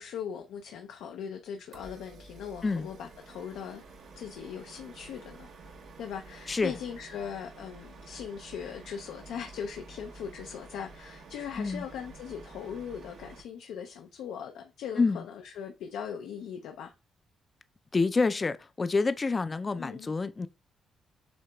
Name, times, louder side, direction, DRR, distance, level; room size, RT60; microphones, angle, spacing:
voice 1, 0.0-3.8 4.2-5.5 6.0-16.9 19.8-20.1, left 7 dB, 85° left, 0.5 m, -40 dB
sound 1, 1.7-13.4, right 3 dB, 65° right, 0.9 m, -50 dB
voice 2, 17.9-20.5, left 4 dB, 30° left, 0.4 m, -27 dB
7.7 x 2.9 x 2.2 m
cardioid pair, 90°, 0 cm